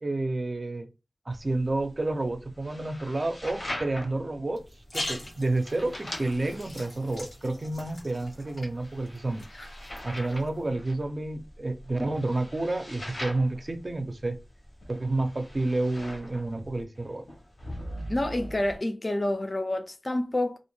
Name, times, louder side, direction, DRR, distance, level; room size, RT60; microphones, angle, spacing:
voice 1, 0.0-0.9 1.3-4.6 4.9-9.4 10.0-14.4 14.9-17.2, right 2 dB, 50° right, 0.5 m, -30 dB
sound 1, 1.3-18.8, equal, 65° left, 0.9 m, -42 dB
sound 2, 4.6-10.7, left 1 dB, 85° left, 1.3 m, -42 dB
voice 2, 18.1-20.6, left 1 dB, 40° left, 0.4 m, -28 dB
2.4 x 2.1 x 3.0 m
wide cardioid pair, 65°, 0 cm